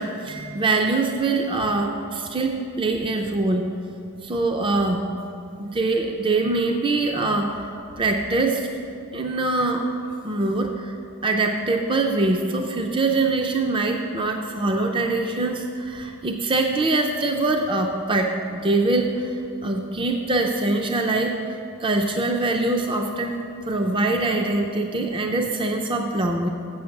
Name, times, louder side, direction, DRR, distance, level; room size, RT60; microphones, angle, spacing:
voice 1, 0.0-3.7 4.2-5.0 5.6-7.6 8.0-8.7 9.1-9.9 10.2-10.9 11.2-26.5, right 2 dB, 20° right, 3 dB, 0.4 m, -23 dB
7.7 x 7.0 x 6.5 m, 2.7 s
head